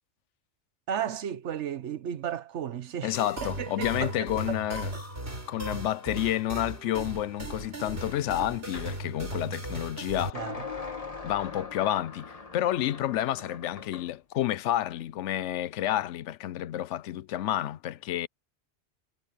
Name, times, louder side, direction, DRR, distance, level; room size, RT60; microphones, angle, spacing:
voice 1, 0.9-5.0 10.3-10.6, right 9 dB, 85° right, 1.2 m, -35 dB
voice 2, 3.0-4.9 5.5-10.4 11.2-18.3, left 12 dB, 85° left, 0.9 m, -30 dB
sound 1, 3.1-10.3, right 1 dB, 60° right, 5.6 m, -37 dB
sound 2, 8.7-8.9 10.4-14.1, left 4 dB, 30° left, 1.6 m, -41 dB
omnidirectional pair, 1.2 m